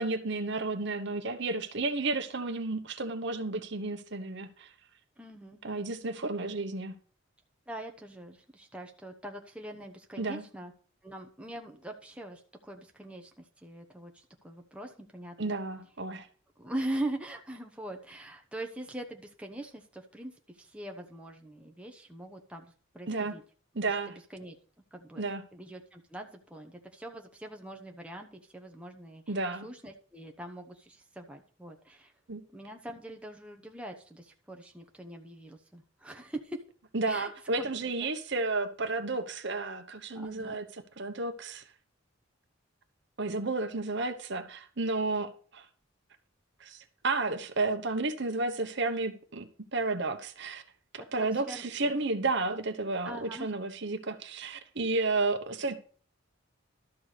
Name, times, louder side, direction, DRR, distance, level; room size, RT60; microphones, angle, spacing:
voice 1, 0.0-4.7 5.6-6.9 10.2-10.4 15.4-16.3 23.1-23.3 23.7-24.1 25.2-25.4 29.3-29.7 32.3-32.4 36.9-40.7 41.0-41.6 43.2-45.6 46.6-50.6 51.1-55.8, right 3 dB, 60° right, 1.1 m, -32 dB
voice 2, 5.2-5.6 7.7-10.7 11.0-15.5 16.6-23.4 23.9-24.6 24.9-25.2 25.5-32.1 32.5-36.6 37.0-37.3 37.6-38.1 40.1-40.6 51.0-52.0 53.0-53.5, right 1 dB, 5° right, 1.0 m, -42 dB
12.5 x 4.7 x 6.7 m
head